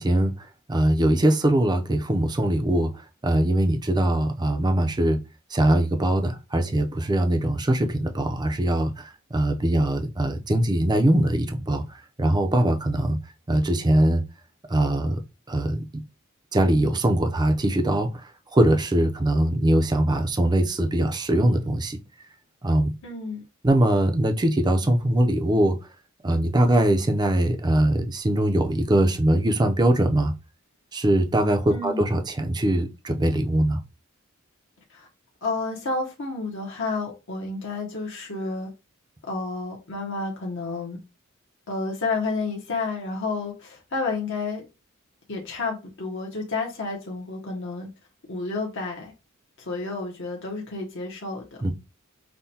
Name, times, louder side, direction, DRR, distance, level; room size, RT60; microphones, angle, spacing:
voice 1, 0.0-2.9 3.2-5.2 5.5-11.8 12.2-13.2 13.5-14.2 14.7-15.2 15.5-15.8 16.5-18.1 18.5-22.0 22.6-22.9 23.6-25.8 26.2-30.3 30.9-33.8 51.6-51.7, right 1 dB, 20° right, 0.5 m, -22 dB
voice 2, 23.0-23.4 31.7-32.0 34.9-35.1 35.4-38.7 39.3-41.0 41.7-44.7 45.3-47.9 48.3-49.1 49.6-51.4, left 3 dB, 60° left, 0.9 m, -30 dB
5.6 x 2.2 x 2.8 m
head